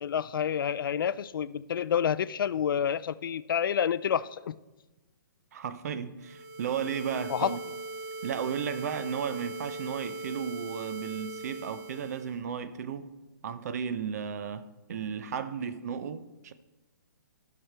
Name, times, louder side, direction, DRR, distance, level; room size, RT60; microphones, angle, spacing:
voice 1, 0.0-4.5 7.3-7.6, left 8 dB, 80° left, 0.4 m, -29 dB
voice 2, 5.5-7.6 8.2-13.1 13.4-16.5, right 7 dB, 50° right, 0.6 m, -34 dB
sound 1, 6.2-12.4, right 3 dB, 80° right, 1.8 m, -40 dB
14.0 x 5.9 x 3.4 m
hypercardioid pair, 160°, 11 cm